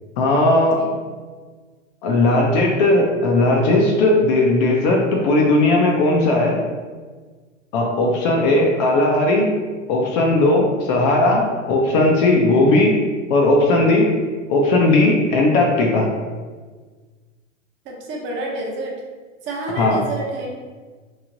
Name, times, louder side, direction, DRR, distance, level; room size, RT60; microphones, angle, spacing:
voice 1, 0.2-0.8 2.0-6.6 7.7-9.5 9.9-13.0 13.3-14.1 14.5-16.1 19.8-20.0, left 2 dB, 35° left, 0 dB, 0.4 m, -17 dB
voice 2, 17.8-18.9 19.4-20.6, right 2 dB, 30° right, -2 dB, 0.6 m, -29 dB
3.1 x 2.7 x 2.5 m, 1.4 s
hypercardioid pair, 110°, 39 cm